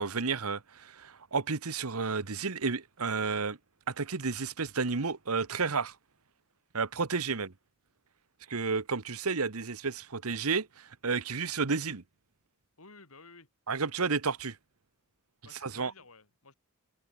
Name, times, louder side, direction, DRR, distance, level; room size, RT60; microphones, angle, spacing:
voice 1, 0.0-3.6 3.9-5.9 6.7-7.5 8.5-12.0 13.7-14.6 15.6-15.9, right 4 dB, 80° right, 1.2 m, -31 dB
voice 2, 12.8-13.5 15.4-16.5, left 3 dB, 70° left, 6.5 m, -54 dB
head